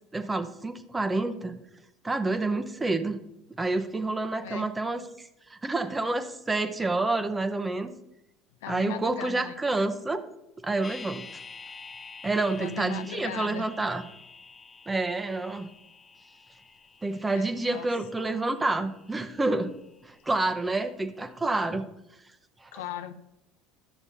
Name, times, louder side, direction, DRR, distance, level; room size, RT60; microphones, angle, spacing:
voice 1, 0.1-1.6 2.0-3.2 3.6-7.9 8.7-10.2 10.6-11.3 12.2-14.0 14.9-15.7 17.0-19.7 20.0-21.9 22.6-22.7, right 2 dB, 15° right, 10 dB, 0.8 m, -28 dB
voice 2, 8.6-9.5 12.6-13.7 17.3-17.9 22.7-23.1, left 10 dB, 80° left, 10 dB, 0.5 m, -38 dB
sound 1, 10.8-20.9 21.2-21.3, left 4 dB, 20° left, 1.0 m, -48 dB
12.0 x 6.9 x 2.8 m, 0.88 s
hypercardioid pair, 80°, 0 cm